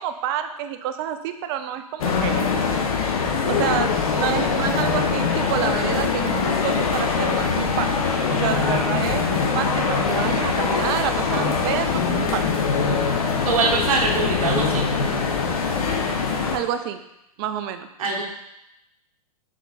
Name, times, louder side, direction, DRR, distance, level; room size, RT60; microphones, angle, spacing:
voice 1, 0.0-2.4 3.5-12.4 16.5-17.0 17.4-17.9, right 10 dB, 40° right, 9 dB, 0.4 m, -28 dB
sound 1, 2.0-16.6, left 5 dB, 65° left, 0.6 m, -23 dB
voice 2, 13.4-15.3 18.0-18.2, right 4 dB, 65° right, -2 dB, 1.0 m, -24 dB
4.9 x 3.7 x 2.3 m, 0.85 s
hypercardioid pair, 110°, 20 cm